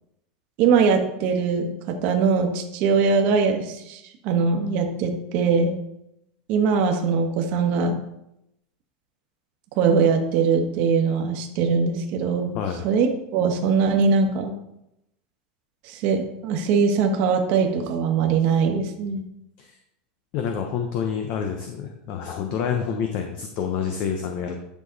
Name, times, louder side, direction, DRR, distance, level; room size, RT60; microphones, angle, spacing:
voice 1, 0.6-5.8 6.5-8.0 9.8-12.6 12.8-14.5 15.8-19.2, right 5 dB, 40° right, 4 dB, 1.4 m, -21 dB
voice 2, 12.5-12.8 19.6-19.7 20.3-24.5, left 7 dB, 40° left, 4 dB, 0.9 m, -28 dB
10.5 x 6.1 x 4.1 m, 0.82 s
supercardioid pair, 170°, 4 cm